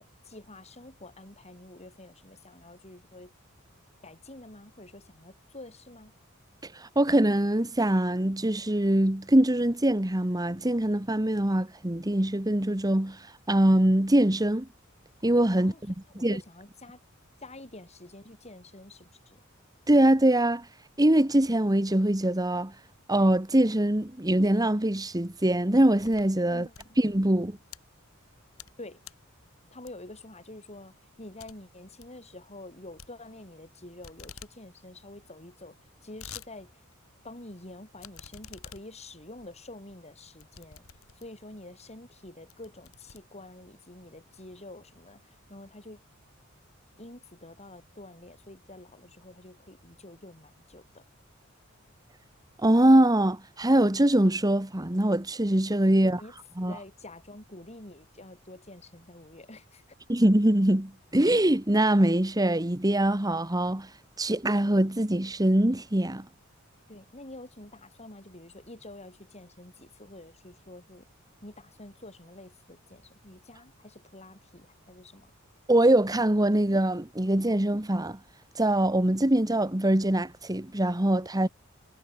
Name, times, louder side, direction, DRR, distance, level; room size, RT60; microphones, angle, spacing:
voice 1, 0.0-3.3 4.0-6.1 15.6-15.8 16.1-17.0 17.4-19.4 26.5-27.0 28.8-29.1 29.7-35.8 36.0-36.7 37.2-40.8 41.1-46.0 47.0-51.1 56.0-59.8 66.9-71.1 71.4-75.3, left 2 dB, 30° left, 7.5 m, -47 dB
voice 2, 6.6-14.7 15.2-15.7 16.2-16.4 19.9-20.7 21.0-22.7 23.1-26.7 27.0-27.6 52.6-56.2 56.6-56.8 60.1-63.9 64.2-66.2 75.7-78.2 78.5-81.5, right 1 dB, 20° right, 1.5 m, -23 dB
sound 1, 26.0-26.3 26.6-27.8 28.3-28.8 29.0-29.3 29.9-30.2 30.6-30.7 31.0-31.1 31.4-31.5 31.8-32.1 33.0-33.7 34.0-34.5 34.9-35.0 35.1-35.2 35.8-36.5 36.9-37.0 38.0-41.5 42.1-42.2 42.5-43.7, left 7 dB, 85° left, 4.6 m, -48 dB
head